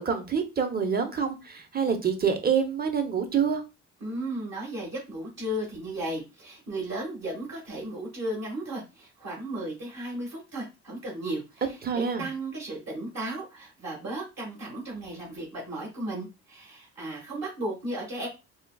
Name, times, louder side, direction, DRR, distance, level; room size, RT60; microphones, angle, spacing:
voice 1, 0.0-3.6 11.8-12.2, right 6 dB, 30° right, 6 dB, 0.7 m, -26 dB
voice 2, 4.0-18.3, right 1 dB, 60° right, -3 dB, 1.4 m, -35 dB
3.8 x 2.3 x 2.3 m, 0.27 s
cardioid pair, 90°, 30 cm